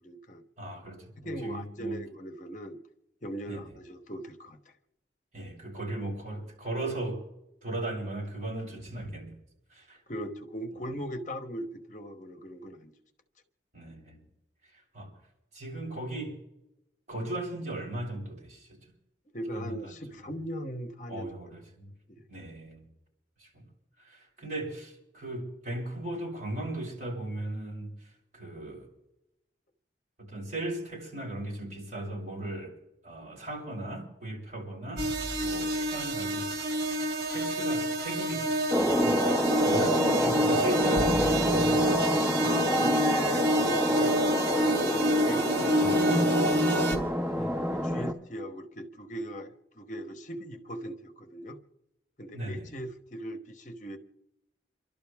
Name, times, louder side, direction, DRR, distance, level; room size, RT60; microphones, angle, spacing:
voice 1, 0.0-0.4 1.2-2.8 3.2-4.6 10.1-12.9 19.3-21.3 22.1-22.2 42.4-45.7 47.7-51.6 52.2-54.0, equal, 45° left, 6 dB, 1.1 m, -39 dB
voice 2, 0.6-2.0 3.5-3.6 5.3-7.2 7.6-9.3 9.7-10.0 13.7-14.3 14.7-15.1 15.5-16.3 17.1-18.7 19.5-20.2 21.1-21.9 22.3-22.9 23.4-23.6 24.0-27.9 28.3-28.9 30.2-32.7 33.0-35.1 35.4-36.7 37.3-38.5 38.9-39.2 39.6-41.9 43.5-43.6 45.8-46.0 47.4-47.6 52.3-52.7, right 1 dB, 40° right, -4 dB, 7.6 m, -37 dB
sound 1, 35.0-47.0, right 1 dB, 70° right, 2.8 m, -28 dB
sound 2, 38.7-48.1, equal, 15° right, 1.6 m, -27 dB
29.0 x 12.5 x 3.5 m, 0.88 s
head